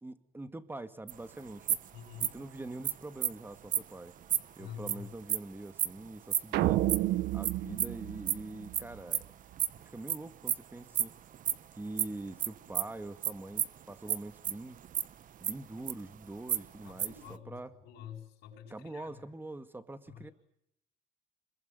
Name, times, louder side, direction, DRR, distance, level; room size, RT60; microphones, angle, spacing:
voice 1, 0.0-1.8 2.2-4.1 4.6-6.8 7.3-9.2 9.8-11.1 11.7-14.8 15.4-17.7 18.7-20.3, right 2 dB, 10° right, 10 dB, 2.0 m, -44 dB
sound 1, 1.1-1.2 1.7-1.9 2.2-2.4 2.8-2.9 3.2-3.3 3.7-3.8 4.3-4.4 4.9-5.0 5.3-5.4 5.8-5.9 6.3-6.4 6.9-7.0 7.4-7.5 7.8-7.9 8.3-8.4 8.7-8.8 9.1-9.3 9.6-10.2 10.5-10.6 10.9-11.1 11.3-11.5 12.0-12.1 12.4-12.5 12.7-12.9 13.2-13.3 13.6-13.8 14.1-14.2 14.4-15.1 15.4-16.2 16.5-17.3, right 10 dB, 50° right, 1.1 m, -29 dB
voice 2, 1.9-2.3 4.6-5.0 16.8-19.2 20.1-20.3, left 9 dB, 90° left, 0 dB, 7.3 m, -48 dB
sound 2, 6.5-9.0, right 15 dB, 85° right, 1.0 m, -31 dB
26.5 x 22.0 x 9.3 m, 0.77 s
cardioid pair, 110°, 17 cm